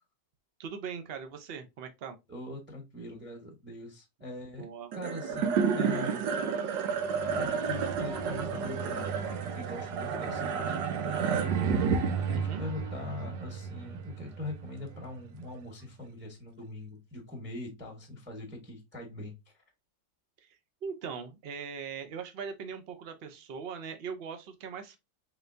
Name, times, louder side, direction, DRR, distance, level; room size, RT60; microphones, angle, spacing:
voice 1, 0.6-2.2 4.6-4.9 12.3-12.6 20.4-25.0, right 6 dB, 60° right, 0.6 m, -40 dB
voice 2, 2.3-4.7 4.9-6.2 7.4-19.3, left 2 dB, 10° right, 0.8 m, -42 dB
sound 1, 4.9-15.4, right 6 dB, 85° right, 1.4 m, -31 dB
sound 2, 5.3-5.8 6.3-6.8 7.3-9.7 10.2-10.7 11.1-13.1, left 5 dB, 55° left, 0.5 m, -47 dB
4.2 x 3.3 x 2.6 m
omnidirectional pair, 1.9 m